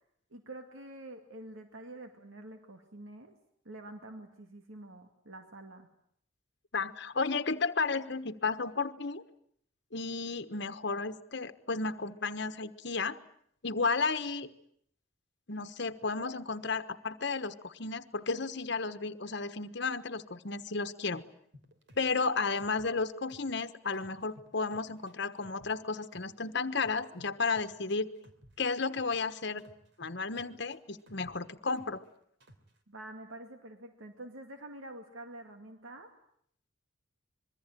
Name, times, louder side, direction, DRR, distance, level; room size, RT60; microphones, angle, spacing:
voice 1, 0.3-3.4 3.6-5.9 32.9-36.1, right 1 dB, 85° right, 5 dB, 2.2 m, -47 dB
voice 2, 6.7-9.2 9.9-13.2 13.6-14.5 15.5-21.2 22.0-28.1 28.6-29.7 30.0-32.0, left 4 dB, 60° left, 10 dB, 1.3 m, -33 dB
sound 1, 21.5-23.6 23.9-26.4 26.8-29.2 29.6-32.1 32.4-32.8, equal, 60° right, 3.4 m, -58 dB
26.0 x 22.0 x 9.1 m, 0.69 s
head